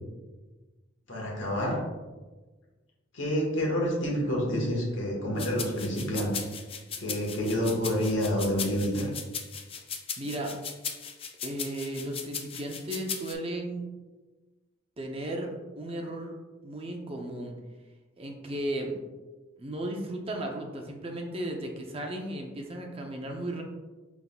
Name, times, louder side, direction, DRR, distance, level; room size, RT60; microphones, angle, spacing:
voice 1, 1.1-1.8 3.1-6.3 7.0-9.1, equal, 80° left, -2 dB, 1.3 m, -28 dB
sound 1, 5.4-13.3, left 6 dB, 30° left, 0.4 m, -37 dB
voice 2, 10.2-10.5 11.4-13.8 15.0-16.3 16.6-17.5 18.2-18.9 19.6-23.6, right 1 dB, 30° right, 2 dB, 0.5 m, -35 dB
5.7 x 3.5 x 2.2 m, 1.2 s
head